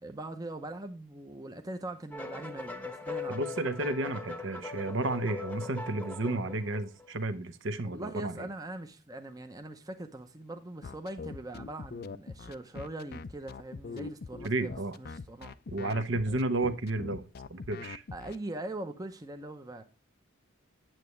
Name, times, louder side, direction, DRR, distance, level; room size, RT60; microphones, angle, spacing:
voice 1, 0.0-3.4 7.8-15.6 18.1-19.8, right 1 dB, 20° right, 0.7 m, -41 dB
sound 1, 2.1-7.1, left 3 dB, 5° left, 1.0 m, -40 dB
voice 2, 3.3-8.5 14.4-15.0 15.7-18.0, right 2 dB, 65° right, 0.9 m, -32 dB
sound 2, 10.8-18.4, left 4 dB, 50° left, 0.4 m, -42 dB
9.0 x 8.1 x 3.2 m
head